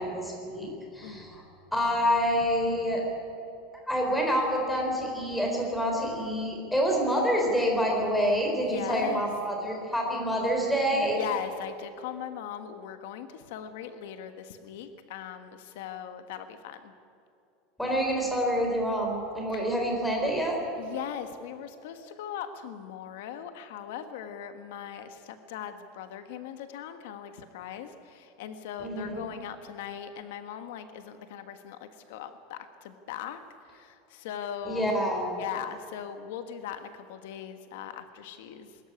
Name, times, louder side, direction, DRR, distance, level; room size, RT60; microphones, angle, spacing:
voice 1, 0.0-1.4 1.7-3.1 3.9-11.2 17.8-20.6 28.8-29.3 34.6-35.4, equal, 5° left, 0 dB, 4.1 m, -27 dB
voice 2, 8.6-9.3 10.9-16.9 19.5-19.6 20.8-33.4 33.7-35.0 35.3-38.8, left 9 dB, 75° left, 8 dB, 1.4 m, -39 dB
22.5 x 13.5 x 9.8 m, 2.7 s
supercardioid pair, 170°, 0 cm